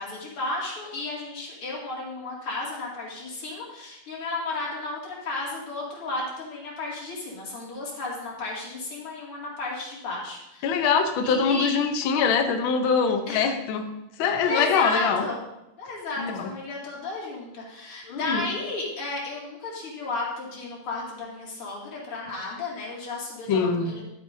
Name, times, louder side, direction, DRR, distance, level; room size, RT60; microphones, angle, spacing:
voice 1, 0.0-10.7 11.2-11.7 13.3-13.5 14.4-15.4 15.8-24.0, left 3 dB, 45° left, -4 dB, 3.2 m, -33 dB
voice 2, 10.6-13.9 14.2-15.2 16.2-16.5 18.1-18.5 23.5-23.9, left 5 dB, 85° left, 5 dB, 1.1 m, -23 dB
12.0 x 9.9 x 2.7 m, 0.88 s
omnidirectional pair, 3.5 m